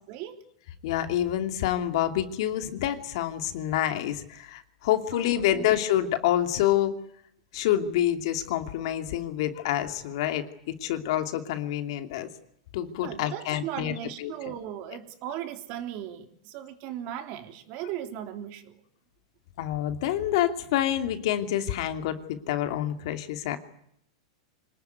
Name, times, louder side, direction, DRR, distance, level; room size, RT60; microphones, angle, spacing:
voice 1, 0.8-6.9 7.5-12.3 12.7-13.9 14.2-14.3 19.6-23.6, left 12 dB, 60° left, 2.7 m, -27 dB
voice 2, 5.1-5.7 13.0-18.8, right 11 dB, 45° right, 3.4 m, -37 dB
26.0 x 19.5 x 9.5 m
supercardioid pair, 145°, 3 cm